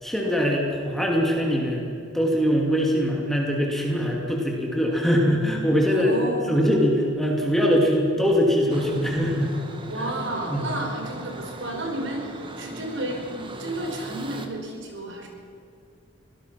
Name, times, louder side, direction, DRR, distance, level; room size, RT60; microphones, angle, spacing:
voice 1, 0.0-6.2 6.5-9.5 10.5-10.6, equal, ahead, -1 dB, 2.6 m, -22 dB
voice 2, 5.8-6.6 9.9-13.2 13.6-15.3, right 1 dB, 60° right, 2 dB, 4.8 m, -31 dB
sound 1, 8.7-14.5, right 2 dB, 25° right, 1.7 m, -39 dB
24.5 x 18.0 x 6.1 m, 2.6 s
head